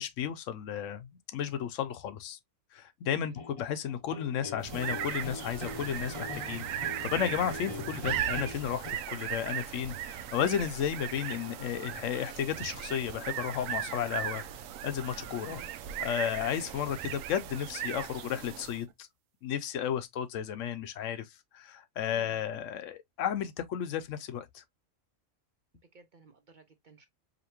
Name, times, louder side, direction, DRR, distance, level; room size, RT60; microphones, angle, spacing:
voice 1, 0.0-2.4 2.7-14.4 14.8-15.6 16.0-19.1 19.4-21.2 21.5-24.6, left 9 dB, 75° left, 0.9 m, -33 dB
voice 2, 3.1-3.4 15.4-15.8 22.1-22.5 25.9-27.1, right 4 dB, 50° right, 0.7 m, -55 dB
sound 1, 3.4-8.9, left 3 dB, 40° left, 0.6 m, -43 dB
sound 2, 4.6-18.9, right 10 dB, 90° right, 1.0 m, -38 dB
5.1 x 2.7 x 2.9 m
omnidirectional pair, 1.3 m